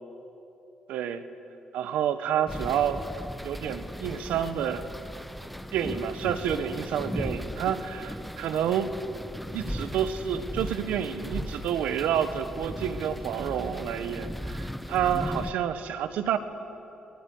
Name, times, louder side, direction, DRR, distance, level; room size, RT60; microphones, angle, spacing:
voice 1, 0.9-1.2 1.7-3.0 3.4-4.8 5.7-8.9 9.5-16.4, right 9 dB, 85° right, 10 dB, 1.4 m, -29 dB
sound 1, 2.5-15.5, equal, ahead, 1.2 m, -37 dB
22.5 x 19.0 x 9.7 m, 2.9 s
cardioid pair, 80°, 2 cm